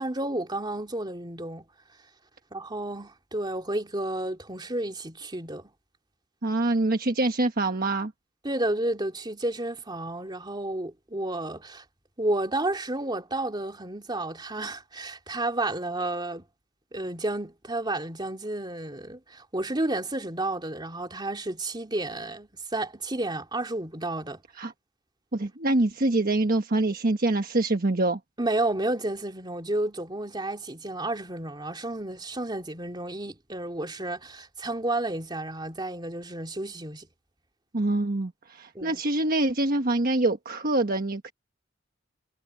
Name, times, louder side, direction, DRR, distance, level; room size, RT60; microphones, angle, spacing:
voice 1, 0.0-1.7 2.5-5.7 8.4-11.8 12.2-16.4 16.9-24.4 28.4-37.1 38.7-39.0, right 2 dB, 20° right, 3.1 m, -31 dB
voice 2, 6.4-8.1 24.6-24.7 25.3-28.2 37.7-41.3, right 2 dB, 45° right, 1.3 m, -25 dB
head